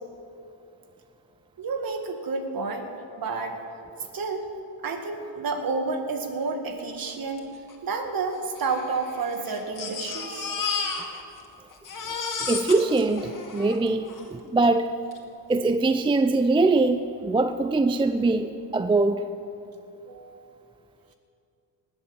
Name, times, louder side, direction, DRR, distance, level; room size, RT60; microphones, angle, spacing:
voice 1, 1.6-3.6 4.1-4.5 4.8-7.4 7.8-10.6 20.1-20.5, right 4 dB, 45° right, 5 dB, 2.0 m, -30 dB
Crying sobbing, 7.4-7.5 7.7-7.8 8.6-11.5 11.7-14.3 15.1-15.2 15.6-15.7, left 5 dB, 40° left, 2.4 m, -33 dB
voice 2, 12.5-14.9 15.5-19.2, right 3 dB, 10° right, 9 dB, 0.4 m, -22 dB
19.0 x 8.0 x 7.1 m, 2.6 s
cardioid pair, 95°, 47 cm